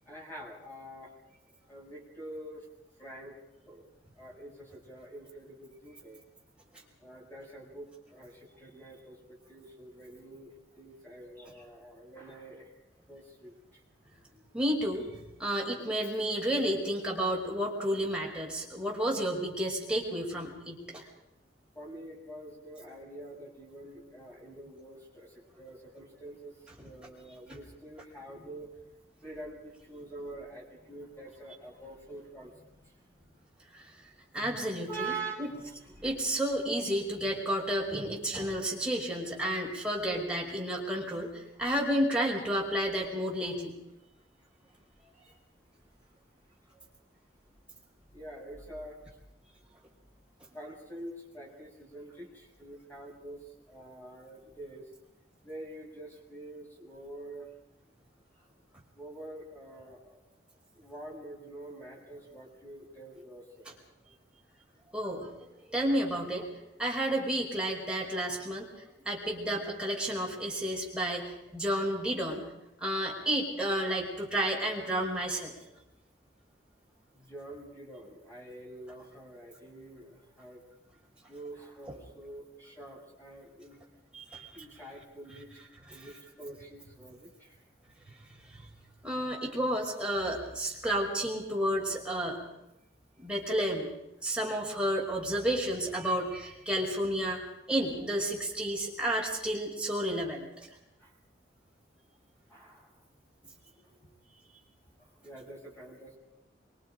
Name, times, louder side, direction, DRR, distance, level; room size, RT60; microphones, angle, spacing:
voice 1, 0.1-1.1 1.7-2.7 3.0-3.4 3.6-3.8 4.1-6.2 7.0-12.7 13.1-13.8 15.5-15.6 21.7-28.8 29.2-33.3 34.9-36.2 41.5-41.7 44.7-44.9 48.1-49.0 50.5-54.8 55.4-57.5 58.4-58.5 58.9-60.2 60.8-63.7 77.1-80.6 81.3-83.8 84.5-85.5 85.9-87.6 101.0-101.1 102.5-102.9 105.0-106.2, right 2 dB, 10° left, -2 dB, 6.7 m, -46 dB
voice 2, 14.5-21.0 33.7-33.9 34.3-35.1 35.4-35.5 36.0-43.7 64.9-66.5 66.8-68.7 69.0-72.4 72.8-75.5 81.9-82.0 84.1-84.8 85.9-86.1 88.5-88.7 89.0-92.4 93.2-93.9 94.2-100.7, right 1 dB, 5° right, -3 dB, 5.1 m, -31 dB
26.5 x 25.0 x 5.2 m, 0.87 s
head